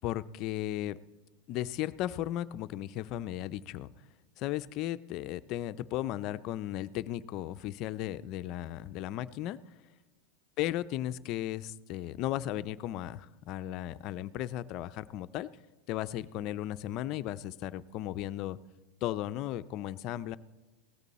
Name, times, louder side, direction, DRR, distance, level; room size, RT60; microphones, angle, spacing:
voice 1, 0.0-1.0 1.5-3.9 4.4-9.6 10.6-15.5 15.9-18.6 19.0-20.4, left 13 dB, 40° left, 14 dB, 0.4 m, -35 dB
16.5 x 14.0 x 4.1 m, 1.2 s
supercardioid pair, 160°, 0 cm